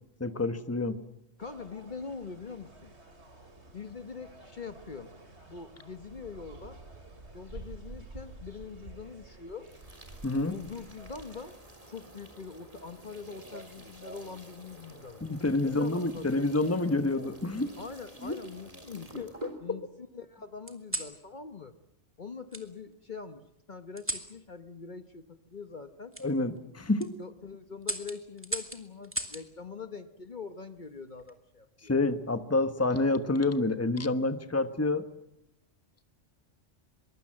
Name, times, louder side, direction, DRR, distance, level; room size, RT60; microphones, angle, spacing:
voice 1, 0.2-1.0 10.2-10.5 15.2-17.7 18.2-18.4 26.2-27.1 31.8-35.0, left 2 dB, 15° left, 10 dB, 1.1 m, -28 dB
voice 2, 1.4-2.9 3.7-5.1 5.5-6.8 7.3-9.7 10.4-11.5 11.9-15.2 15.6-16.4 17.8-19.3 19.6-21.8 22.2-26.1 27.2-31.9 32.8-32.9, left 5 dB, 40° left, 9 dB, 1.1 m, -43 dB
sound 1, 1.4-11.6, right 2 dB, 60° right, 3.3 m, -50 dB
sound 2, 9.6-19.6, right 1 dB, 30° right, 3.9 m, -51 dB
sound 3, 13.3-14.4 15.5-15.9 17.1-17.9 18.5-19.4 20.7-21.2 22.5-22.7 24.0-24.3 26.1-26.3 26.8-27.1 27.8-29.5 31.0-31.4, right 1 dB, 10° right, 2.2 m, -39 dB
23.0 x 23.0 x 7.6 m, 0.81 s
omnidirectional pair, 1.2 m